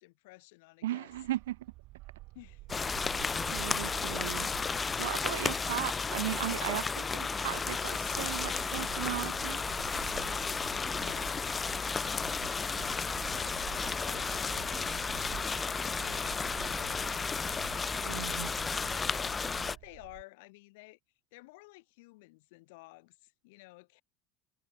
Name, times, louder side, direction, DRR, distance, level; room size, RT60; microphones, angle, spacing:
voice 1, 0.0-1.1 2.3-2.8 10.8-21.0 21.3-24.0, left 24 dB, 75° left, 6.3 m, -54 dB
voice 2, 0.8-1.6 3.5-4.5 5.0-9.6 18.0-18.5, right 14 dB, 90° right, 0.5 m, -36 dB
Bark, 1.1-20.2, right 20 dB, 65° right, 6.6 m, -49 dB
sound 1, 2.7-19.8, left 5 dB, 25° left, 0.3 m, -33 dB
hypercardioid pair, 85°, 0 cm